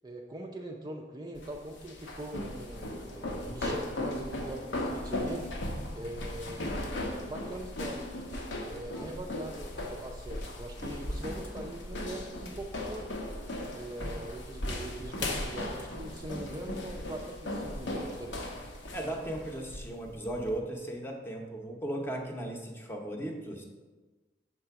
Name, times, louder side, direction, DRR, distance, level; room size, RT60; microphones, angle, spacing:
voice 1, 0.0-5.5 5.9-8.1 8.6-13.3 13.7-18.4, right 1 dB, 20° right, 1 dB, 0.4 m, -42 dB
sound 1, 1.4-20.6, left 1 dB, 75° left, 0.9 m, -37 dB
voice 2, 18.9-23.6, right 1 dB, 10° left, 1 dB, 0.7 m, -36 dB
5.9 x 3.9 x 5.6 m, 1.3 s
head